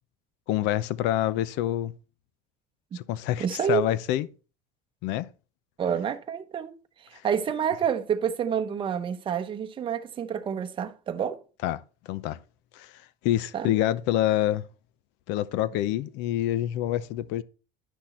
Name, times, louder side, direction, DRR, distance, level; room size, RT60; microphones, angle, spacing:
voice 1, 0.5-1.9 2.9-4.3 5.0-5.3 11.6-11.8 12.1-12.4 12.7-14.6 15.3-17.4, left 13 dB, 70° left, 0.6 m, -27 dB
voice 2, 3.4-3.8 5.8-6.7 7.1-11.4 13.5-13.7, right 8 dB, 25° right, 0.8 m, -28 dB
10.0 x 6.1 x 4.3 m
cardioid pair, 140°, 19 cm